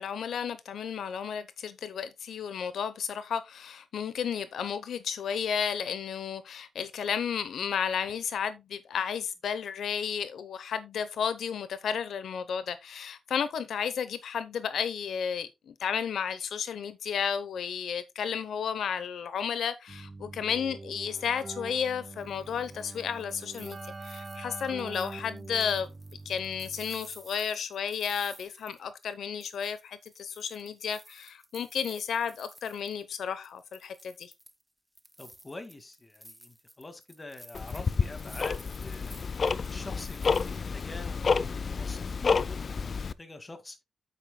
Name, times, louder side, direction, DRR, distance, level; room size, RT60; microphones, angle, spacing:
voice 1, 0.0-25.9 26.2-34.3, left 7 dB, 85° left, 0.8 m, -33 dB
Keyboard (musical), 19.9-27.2, right 3 dB, 35° right, 0.7 m, -44 dB
sound 1, 23.0-29.1 29.4-33.2 33.4-34.6 35.0-41.1, equal, ahead, 1.3 m, -51 dB
voice 2, 35.2-39.2 39.7-43.8, left 2 dB, 25° left, 2.0 m, -45 dB
Tick-tock, 37.5-43.1, left 5 dB, 55° left, 0.5 m, -30 dB
8.9 x 8.9 x 2.2 m
cardioid pair, 75°, 0 cm